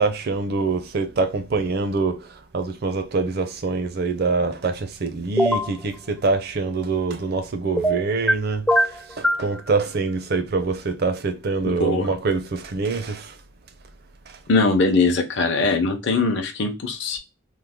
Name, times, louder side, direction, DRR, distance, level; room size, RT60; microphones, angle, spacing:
voice 1, 0.0-13.4, right 4 dB, 50° right, 0.5 m, -25 dB
sound 1, 5.4-5.7 7.8-8.4 8.7-9.5, equal, 5° left, 0.4 m, -20 dB
voice 2, 11.7-12.1 14.5-17.2, left 3 dB, 60° left, 0.6 m, -21 dB
3.1 x 2.1 x 3.4 m
head